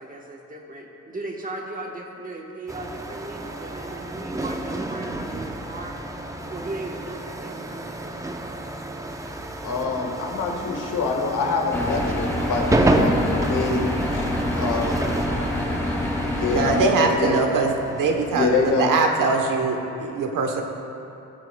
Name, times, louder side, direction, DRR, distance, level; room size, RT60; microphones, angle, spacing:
voice 1, 0.0-6.2 6.5-8.3 14.5-16.0, right 2 dB, 25° right, 1 dB, 1.1 m, -37 dB
sound 1, 2.7-18.8, right 1 dB, 10° right, 0.5 m, -29 dB
voice 2, 9.6-13.8 14.1-14.3 14.5-15.1 16.3-17.5 18.3-18.9, left 4 dB, 70° left, 1 dB, 1.5 m, -25 dB
sound 2, 11.7-16.9, left 1 dB, 10° left, 1.6 m, -26 dB
voice 3, 16.5-20.6, right 4 dB, 80° right, 3 dB, 1.0 m, -22 dB
17.5 x 7.9 x 2.2 m, 2.9 s
cardioid pair, 120°, 32 cm